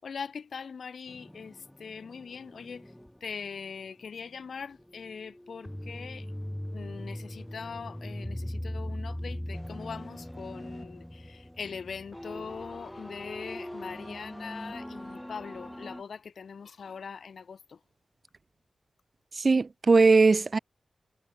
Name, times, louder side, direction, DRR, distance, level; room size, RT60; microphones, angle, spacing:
voice 1, 0.0-2.9 3.2-6.3 6.7-17.8, left 6 dB, 70° left, 6.0 m, -41 dB
sound 1, 1.1-4.5 4.7-16.0, left 1 dB, 5° left, 2.6 m, -40 dB
voice 2, 19.3-20.6, right 4 dB, 40° right, 0.4 m, -20 dB
wide cardioid pair, 155°, 0 cm